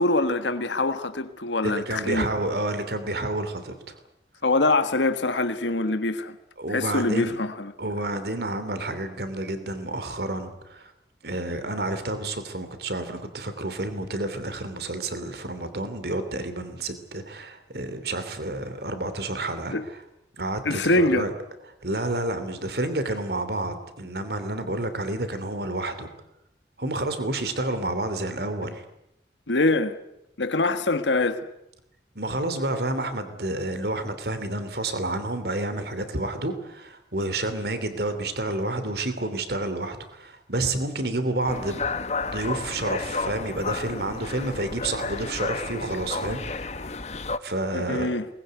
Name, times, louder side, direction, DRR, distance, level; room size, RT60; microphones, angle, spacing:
voice 1, 0.0-2.3 4.4-6.3 6.7-7.7 19.7-19.8 20.6-21.3 29.5-30.0 30.4-31.5 47.7-48.2, left 2 dB, 90° left, 1.5 m, -24 dB
voice 2, 1.6-4.0 6.6-7.4 7.8-10.9 11.2-20.0 20.3-21.3 21.8-26.1 26.8-28.8 32.1-41.8 42.2-46.9 47.4-48.1, right 2 dB, 60° right, 3.0 m, -30 dB
sound 1, 41.4-47.4, left 4 dB, 40° left, 1.0 m, -32 dB
22.5 x 20.5 x 9.5 m
head